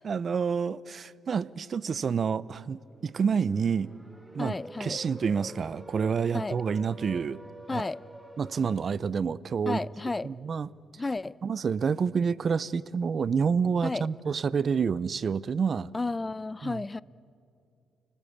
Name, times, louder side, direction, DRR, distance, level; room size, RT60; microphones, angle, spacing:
voice 1, 0.0-3.9 4.3-7.4 7.7-7.9 8.4-9.9 10.2-10.7 11.4-15.9 16.6-17.0, right 6 dB, 45° right, 20 dB, 0.6 m, -28 dB
sound 1, 2.6-8.8, equal, 5° right, 1.9 m, -47 dB
voice 2, 4.4-5.0 6.3-6.6 7.7-8.0 9.7-10.3 11.0-11.3 13.8-14.1 15.9-17.0, left 3 dB, 20° left, 21 dB, 0.5 m, -32 dB
30.0 x 19.5 x 8.6 m, 2.6 s
cardioid pair, 90°, 0 cm